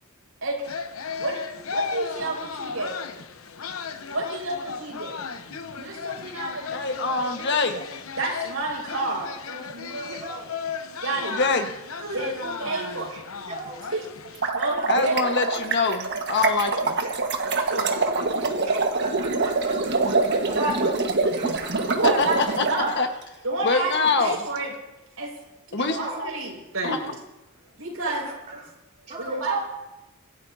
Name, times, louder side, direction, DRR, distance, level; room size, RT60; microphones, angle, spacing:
sound 1, 0.6-14.5, left 6 dB, 80° left, 0.9 m, -35 dB
voice 1, 1.2-3.0 4.1-6.8 7.2-7.8 8.2-10.1 11.0-11.4 12.0-13.5 13.9-14.0 14.5-15.3 17.5-18.7 20.5-20.9 21.9-22.9 23.4-24.7 25.2-25.3 25.9-27.1 27.8-28.3 29.2-29.6, right 2 dB, 80° right, -1 dB, 5.5 m, -30 dB
voice 2, 6.7-7.8 11.3-11.7 14.9-17.0 21.4-21.5 22.0-22.6 23.0-23.1 23.6-24.4 25.7-26.0 26.8-27.1, left 4 dB, 55° left, 5 dB, 1.4 m, -24 dB
voice 3, 10.1-10.5 13.4-13.9 17.0-17.4 18.6-22.0 25.7-26.3 28.1-28.7 29.1-29.5, right 3 dB, 35° right, -3 dB, 2.9 m, -41 dB
sound 2, 14.2-22.7, right 3 dB, 55° right, 1.5 m, -25 dB
25.5 x 12.0 x 2.8 m, 0.98 s
head